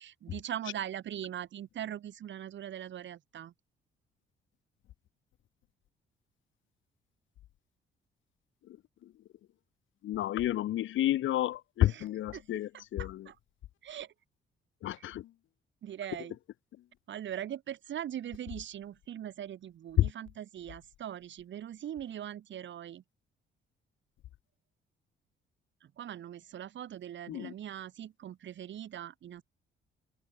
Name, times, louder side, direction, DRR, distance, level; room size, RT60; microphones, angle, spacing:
voice 1, 0.0-3.5 11.9-12.0 12.3-12.4 12.7-13.4 13.8-14.1 15.0-15.1 15.8-16.4 17.1-23.0 25.8-29.4, right 10 dB, 70° right, 4.5 m, -41 dB
voice 2, 10.0-13.3 14.8-15.3 20.0-20.1 27.3-27.5, left 13 dB, 80° left, 2.1 m, -30 dB
cardioid pair, 90°, 20 cm